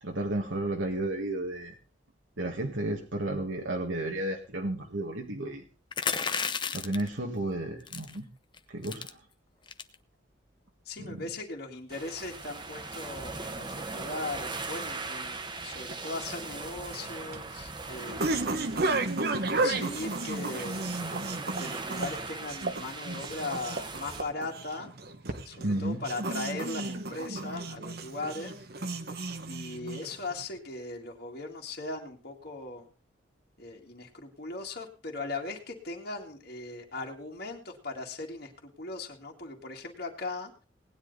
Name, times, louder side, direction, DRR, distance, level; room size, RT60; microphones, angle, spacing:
voice 1, 0.0-1.7 2.4-5.6 6.7-8.3 8.7-9.1 11.0-11.3 18.8-19.3 25.6-26.1, right 1 dB, 85° right, 0 dB, 1.9 m, -33 dB
sound 1, 5.9-7.1 7.9-8.2 8.5-8.6 8.8-9.1 9.7-9.9, left 6 dB, 25° left, 0.8 m, -32 dB
voice 2, 10.9-18.5 19.3-20.9 21.6-24.9 25.5-28.6 29.4-32.9 33.6-40.6, left 3 dB, 50° left, 0 dB, 2.2 m, -39 dB
sound 2, 11.9-24.2, right 3 dB, 25° right, 1.3 m, -39 dB
sound 3, 16.9-30.4, right 2 dB, 55° right, 1.2 m, -33 dB
18.5 x 10.0 x 4.1 m, 0.35 s
head